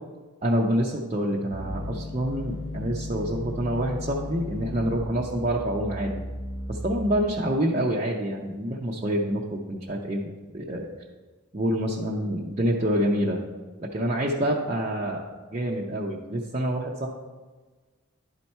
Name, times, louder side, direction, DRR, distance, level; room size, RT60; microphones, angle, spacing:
voice 1, 0.4-6.1 6.7-10.9 11.5-13.4 13.9-15.2 15.5-17.1, equal, 35° right, -3 dB, 0.6 m, -27 dB
sound 1, 1.5-7.5, left 1 dB, 90° left, 0.9 m, -35 dB
11.0 x 4.2 x 4.5 m, 1.3 s
head